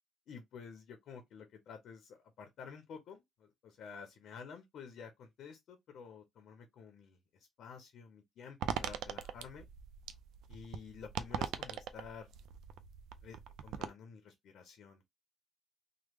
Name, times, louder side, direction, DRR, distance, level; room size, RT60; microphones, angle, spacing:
voice 1, 0.3-9.7 10.5-12.3 13.2-15.1, left 6 dB, 75° left, 0.7 m, -51 dB
sound 1, 8.6-13.9, right 8 dB, 85° right, 0.3 m, -41 dB
3.1 x 2.0 x 3.4 m
cardioid pair, 80°, 0 cm